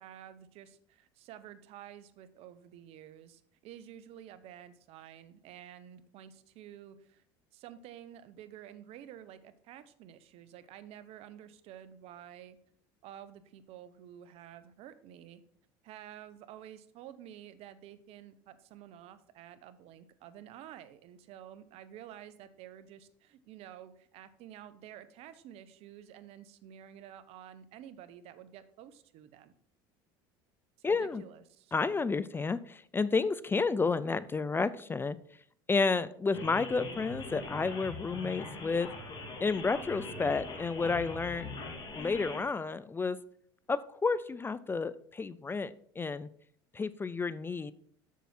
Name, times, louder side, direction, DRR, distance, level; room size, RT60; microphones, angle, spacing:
voice 1, 0.0-7.2 7.5-12.6 13.0-15.4 15.8-29.5 30.9-31.7, right 10 dB, 60° right, 13 dB, 0.8 m, -50 dB
voice 2, 30.8-31.2 31.7-35.2 35.7-38.9 39.4-41.5 41.9-43.2 43.7-46.3 46.7-47.7, left 4 dB, 20° left, 17 dB, 0.4 m, -31 dB
sound 1, 36.3-42.4, left 2 dB, 40° left, 2.3 m, -42 dB
7.3 x 7.1 x 4.4 m, 0.63 s
hypercardioid pair, 85°, 12 cm